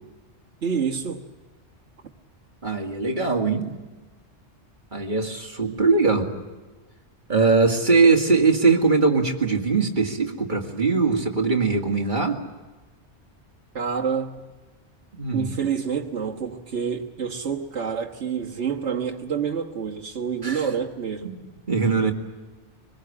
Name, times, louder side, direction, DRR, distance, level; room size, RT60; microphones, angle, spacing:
voice 1, 0.6-1.3 13.7-14.4 15.3-21.3, right 7 dB, 70° right, -2 dB, 1.6 m, -28 dB
voice 2, 2.6-3.7 4.9-6.3 7.3-12.4 15.2-15.5 20.4-20.7 21.2-21.3 21.7-22.1, right 4 dB, 45° right, 2 dB, 2.3 m, -21 dB
24.5 x 21.0 x 8.5 m, 1.2 s
omnidirectional pair, 1.2 m